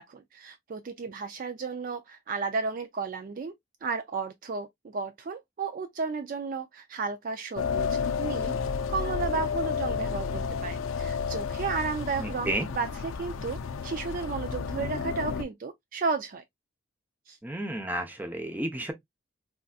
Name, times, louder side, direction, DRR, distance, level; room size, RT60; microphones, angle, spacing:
voice 1, 0.0-3.5 3.8-8.6 8.9-16.4 17.3-17.4, right 4 dB, 45° right, 0.3 m, -33 dB
sound 1, 7.6-15.4, left 5 dB, 85° left, 0.4 m, -31 dB
voice 2, 12.2-12.7 17.4-18.9, right 1 dB, 10° right, 0.6 m, -32 dB
3.4 x 2.7 x 2.3 m
head